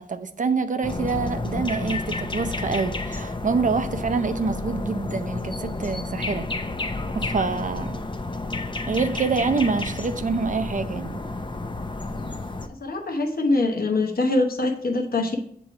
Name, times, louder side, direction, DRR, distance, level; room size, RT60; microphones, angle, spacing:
voice 1, 0.0-6.5 7.1-8.0 8.9-11.2, right 4 dB, 50° right, 9 dB, 0.5 m, -26 dB
sound 1, 0.8-12.7, left 2 dB, 30° left, 0.5 m, -31 dB
voice 2, 12.8-15.4, left 2 dB, 60° left, 1 dB, 0.8 m, -23 dB
7.3 x 3.0 x 4.8 m, 0.66 s
wide cardioid pair, 85°, 17 cm